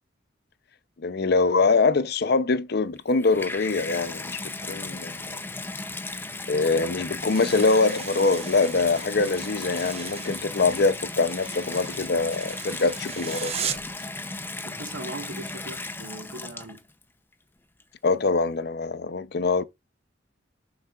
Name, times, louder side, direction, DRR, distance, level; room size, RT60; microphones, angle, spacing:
voice 1, 1.0-5.4 6.5-13.8 18.0-19.6, left 3 dB, 55° left, 0.6 m, -24 dB
Water tap faucet / Bathtub (filling or washing), 3.0-17.0 17.8-17.9, left 2 dB, 10° left, 0.6 m, -36 dB
sound 1, 7.2-14.0, right 7 dB, 30° right, 0.9 m, -38 dB
voice 2, 14.6-16.8, right 2 dB, 70° right, 1.3 m, -39 dB
12.5 x 4.7 x 2.4 m
head